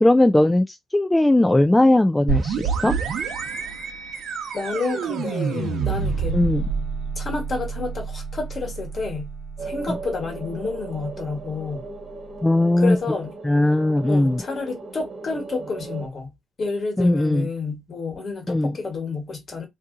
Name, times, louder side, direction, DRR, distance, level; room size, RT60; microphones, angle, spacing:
voice 1, 0.0-2.9 6.3-6.6 9.9-10.0 12.4-13.0 13.4-14.4 17.0-17.5 18.5-18.8, left 1 dB, 10° left, 0.3 m, -18 dB
sound 1, 2.3-11.8, right 6 dB, 70° right, 0.8 m, -29 dB
voice 2, 4.5-6.4 7.1-9.3 9.6-11.9 12.8-13.3 14.1-19.7, left 4 dB, 45° left, 1.4 m, -30 dB
sound 2, 9.6-16.1, right 3 dB, 35° right, 1.0 m, -37 dB
2.7 x 2.3 x 3.7 m
cardioid pair, 90°, 0 cm